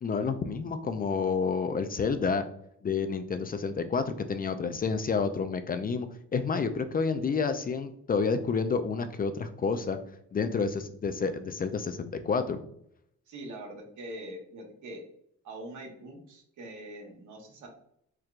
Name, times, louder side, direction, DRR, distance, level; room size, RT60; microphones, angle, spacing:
voice 1, 0.0-2.4 2.8-10.0 10.3-12.6, left 5 dB, 30° left, 9 dB, 0.4 m, -29 dB
voice 2, 13.3-15.0 15.4-17.7, right 1 dB, 75° right, 1 dB, 1.2 m, -43 dB
4.5 x 3.3 x 2.4 m, 0.73 s
cardioid pair, 90°, 30 cm